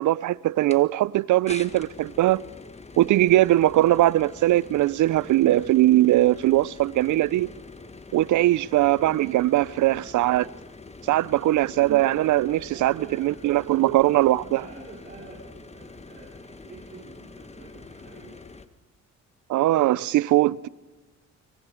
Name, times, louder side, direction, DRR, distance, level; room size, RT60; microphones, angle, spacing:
voice 1, 0.0-2.4 3.0-7.5 8.1-10.5 11.0-14.6 19.5-20.7, right 15 dB, 80° right, 0.7 m, -20 dB
sound 1, 0.7-0.8 1.5-18.7, left 3 dB, 20° left, 1.6 m, -45 dB
voice 2, 11.0-11.5 12.7-13.3 14.3-18.4, right 3 dB, 30° right, 5.3 m, -47 dB
25.0 x 24.5 x 5.1 m
cardioid pair, 90°, 30 cm